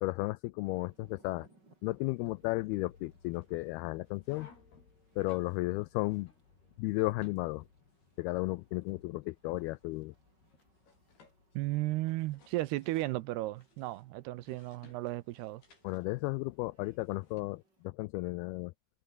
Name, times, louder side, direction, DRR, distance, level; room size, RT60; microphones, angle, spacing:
voice 1, 0.0-1.5 1.8-4.5 5.2-6.3 6.8-7.7 8.2-10.1 15.8-18.7, left 21 dB, 85° left, 2.2 m, -34 dB
sound 1, 0.6-17.9, right 2 dB, 25° right, 6.5 m, -69 dB
sound 2, 2.2-17.4, left 5 dB, 65° left, 8.4 m, -62 dB
voice 2, 11.5-15.6, right 18 dB, 80° right, 2.6 m, -34 dB
omnidirectional pair, 5.0 m